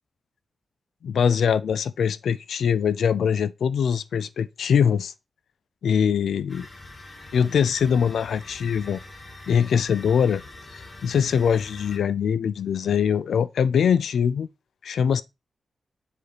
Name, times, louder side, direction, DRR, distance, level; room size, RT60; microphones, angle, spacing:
voice 1, 1.0-5.1 5.8-6.7 7.3-9.0 9.5-10.4 10.7-14.5 14.8-15.2, left 7 dB, 85° left, 0.3 m, -22 dB
sound 1, 6.5-12.0, left 2 dB, 30° left, 1.4 m, -44 dB
7.1 x 4.8 x 3.0 m
wide cardioid pair, 115°, 0 cm